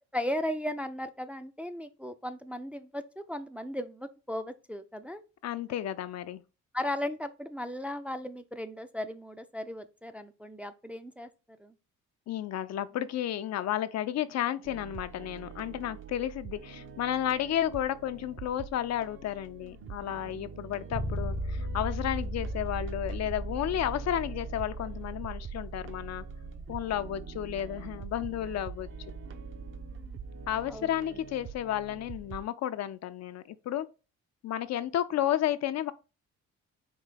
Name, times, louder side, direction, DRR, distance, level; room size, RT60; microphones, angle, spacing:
voice 1, 0.1-5.2 6.7-11.7 30.7-31.2, left 1 dB, 5° right, 0.4 m, -36 dB
voice 2, 5.4-6.4 12.3-26.2 26.7-28.9 30.5-33.9 34.4-35.9, left 11 dB, 60° left, 0.5 m, -32 dB
sound 1, 14.6-32.4, right 7 dB, 45° right, 0.6 m, -46 dB
Bass guitar, 20.9-30.8, right 1 dB, 70° right, 2.0 m, -38 dB
4.6 x 2.7 x 3.8 m
cardioid pair, 90°, 30 cm